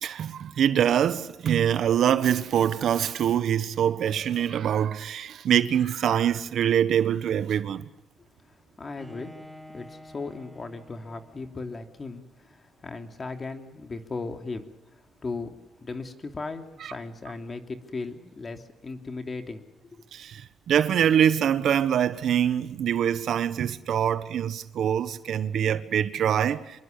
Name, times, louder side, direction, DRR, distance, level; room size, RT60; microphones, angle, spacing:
voice 1, 0.0-7.8 16.8-16.9 20.1-26.8, right 9 dB, 70° right, 1.3 m, -24 dB
voice 2, 8.5-9.3 9.7-14.7 15.2-20.0, left 3 dB, 35° left, 3.1 m, -37 dB
Bowed string instrument, 9.0-11.9, equal, 15° right, 2.8 m, -48 dB
26.5 x 23.0 x 6.8 m
cardioid pair, 90°, 0 cm